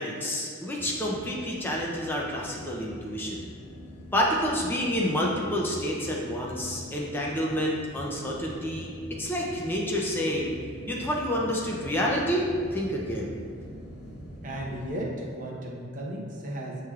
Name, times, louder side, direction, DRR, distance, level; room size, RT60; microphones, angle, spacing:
voice 1, 0.0-3.5 4.1-8.9 9.2-10.5 10.9-13.3, equal, 10° left, -3 dB, 0.4 m, -28 dB
sound 1, 0.7-14.9, equal, 85° left, 1.0 m, -43 dB
voice 2, 14.4-16.8, right 1 dB, 40° right, -2 dB, 0.6 m, -35 dB
6.0 x 3.1 x 2.3 m, 2.1 s
head